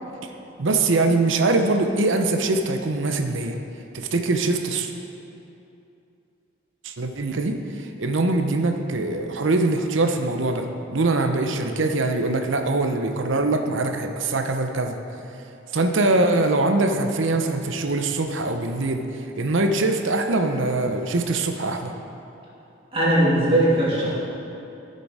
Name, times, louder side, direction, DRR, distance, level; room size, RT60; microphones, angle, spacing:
voice 1, 0.6-3.6 3.9-4.9 6.8-15.0 15.7-19.1 19.4-21.9, right 2 dB, 75° right, 5 dB, 0.8 m, -23 dB
voice 2, 22.9-24.1, right 1 dB, 25° right, -7 dB, 2.3 m, -19 dB
14.0 x 6.8 x 4.8 m, 2.7 s
head